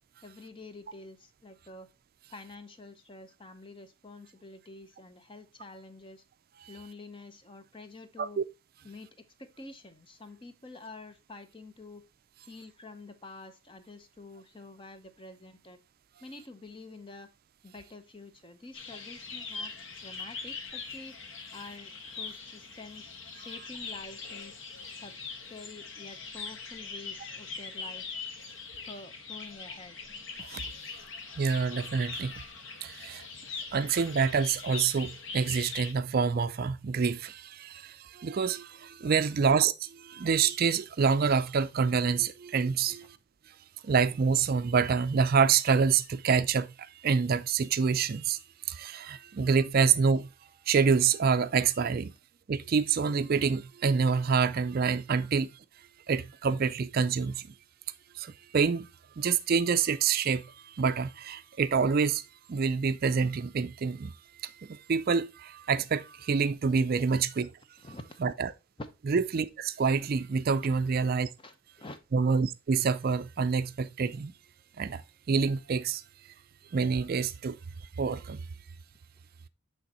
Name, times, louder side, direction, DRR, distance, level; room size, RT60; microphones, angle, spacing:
voice 1, 0.2-1.9 2.3-6.2 6.7-8.4 8.8-12.0 12.4-15.8 16.2-17.3 17.6-21.2 21.5-24.6 25.0-25.2 25.5-28.1 28.8-30.0 67.8-68.2 68.8-68.9 70.6-70.8 71.4-72.0, left 3 dB, 25° left, 0.7 m, -48 dB
sound 1, 18.7-35.9, left 4 dB, 60° left, 1.2 m, -42 dB
voice 2, 31.4-32.3 32.8-33.3 33.7-43.1 43.8-48.4 48.7-50.3 50.7-52.1 52.5-55.5 56.1-57.4 58.2-58.9 59.2-62.2 62.5-67.5 68.2-68.5 69.1-71.3 72.1-74.3 74.8-75.0 75.3-76.0 76.7-77.6 78.0-78.4, right 5 dB, 45° right, 0.4 m, -27 dB
8.6 x 3.5 x 4.2 m
head